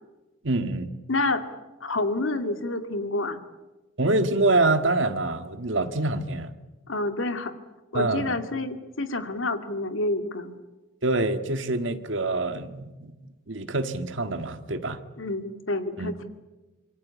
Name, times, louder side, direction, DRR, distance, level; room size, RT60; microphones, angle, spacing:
voice 1, 0.4-0.9 4.0-6.5 7.9-8.3 11.0-13.1 13.5-15.0 16.0-16.2, right 2 dB, 70° right, 9 dB, 1.8 m, -25 dB
voice 2, 1.1-1.4 1.8-3.4 6.9-7.5 7.9-10.6 15.2-16.2, left 2 dB, 80° left, 8 dB, 2.4 m, -28 dB
26.5 x 23.5 x 8.5 m, 1.1 s
head